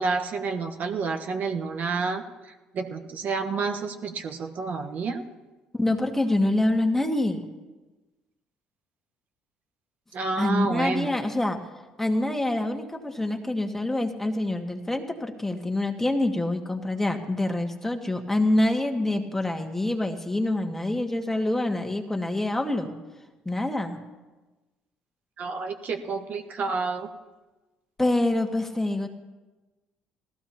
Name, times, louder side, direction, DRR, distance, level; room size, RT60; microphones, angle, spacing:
voice 1, 0.0-5.2 10.1-11.1 25.4-27.1, right 4 dB, 55° right, 4 dB, 1.2 m, -29 dB
voice 2, 5.7-7.4 10.4-11.6 12.0-22.9 23.4-24.0 28.0-29.1, left 1 dB, 10° left, 4 dB, 1.6 m, -26 dB
18.0 x 14.5 x 2.9 m, 1.2 s
hypercardioid pair, 60°, 3 cm